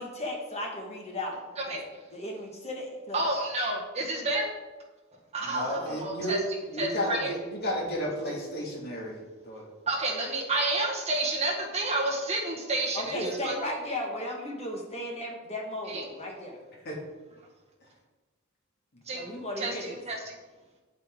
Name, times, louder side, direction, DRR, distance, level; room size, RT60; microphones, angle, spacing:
voice 1, 0.0-1.8 2.1-3.2 5.7-6.0 12.9-16.6 19.1-20.0, left 1 dB, 30° left, 0 dB, 1.7 m, -36 dB
voice 2, 1.6-2.0 3.1-4.4 5.3-6.4 6.8-7.3 9.9-13.5 15.9-16.0 19.1-19.3 19.6-20.2, right 2 dB, 30° right, -1 dB, 1.7 m, -30 dB
voice 3, 5.4-6.4 6.7-9.2 9.4-9.6 13.1-13.2 16.8-17.0, equal, 50° left, -2 dB, 2.2 m, -33 dB
9.1 x 8.2 x 3.7 m, 1.2 s
head